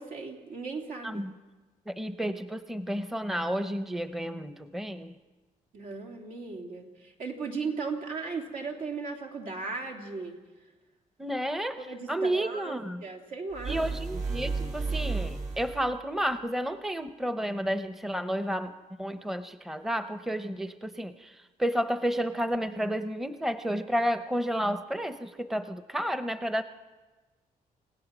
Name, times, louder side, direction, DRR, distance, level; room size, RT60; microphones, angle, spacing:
voice 1, 0.0-1.2 5.7-10.4 11.8-13.9, right 4 dB, 80° right, 2 dB, 3.1 m, -37 dB
voice 2, 1.0-1.4 1.9-5.1 11.2-11.8 12.1-13.0 13.7-26.6, equal, ahead, 10 dB, 0.6 m, -31 dB
sound 1, 13.5-15.9, right 4 dB, 65° right, 3.7 m, -33 dB
28.5 x 17.0 x 6.0 m, 1.2 s
wide cardioid pair, 155°, 14 cm